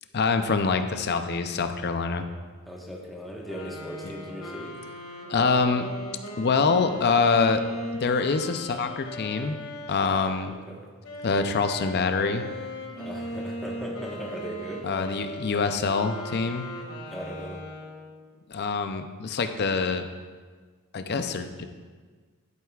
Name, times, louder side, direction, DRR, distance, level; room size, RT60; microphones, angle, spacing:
voice 1, 0.1-2.3 5.3-5.9 6.4-7.6 7.9-9.6 9.9-10.6 11.2-12.4 14.8-16.6 18.5-20.1 20.9-21.7, left 4 dB, 50° left, 8 dB, 0.5 m, -25 dB
voice 2, 2.7-4.7 10.5-10.9 12.9-14.9 17.1-17.6, equal, ahead, -3 dB, 1.3 m, -38 dB
sound 1, 3.4-10.5 11.0-18.2, equal, 80° left, 2.0 m, -38 dB
11.5 x 9.2 x 2.4 m, 1.5 s
head